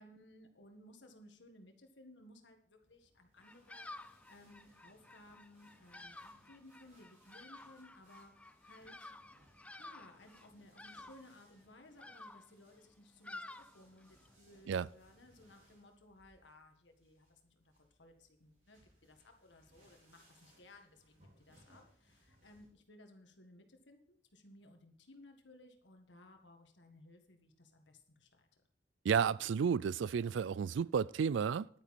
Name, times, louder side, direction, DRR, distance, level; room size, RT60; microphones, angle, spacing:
voice 1, 0.0-9.1 9.8-28.5, left 1 dB, 85° left, 1.7 m, -60 dB
sound 1, 2.8-22.7, right 1 dB, 45° right, 5.3 m, -69 dB
Bird vocalization bird call bird song, 3.4-14.3, left 2 dB, 5° left, 0.3 m, -53 dB
voice 2, 29.0-31.7, right 7 dB, 90° right, 0.4 m, -32 dB
10.5 x 9.4 x 4.3 m
head